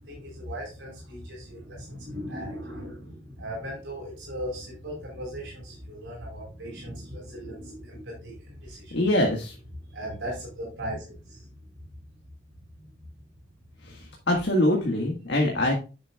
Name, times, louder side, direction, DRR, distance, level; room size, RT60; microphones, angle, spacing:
voice 1, 0.1-9.0 9.9-11.4, equal, 65° right, -1 dB, 4.7 m, -38 dB
voice 2, 8.9-9.5 13.8-15.7, left 1 dB, 65° left, 0 dB, 1.7 m, -24 dB
10.0 x 7.2 x 2.3 m, 0.32 s
head